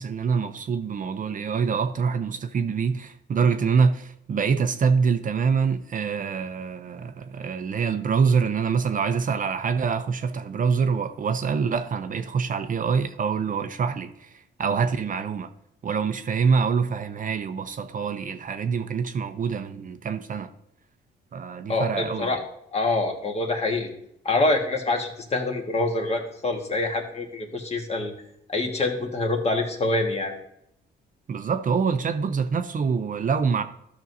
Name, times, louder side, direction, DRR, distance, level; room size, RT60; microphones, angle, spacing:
voice 1, 0.0-15.5 15.8-20.5 21.3-22.3 31.3-33.6, right 5 dB, 40° right, 0.6 m, -25 dB
voice 2, 21.7-22.4 22.7-23.9 24.2-28.1 28.5-30.3, left 2 dB, 30° left, 1.6 m, -25 dB
13.0 x 6.1 x 2.7 m
cardioid pair, 90°, 20 cm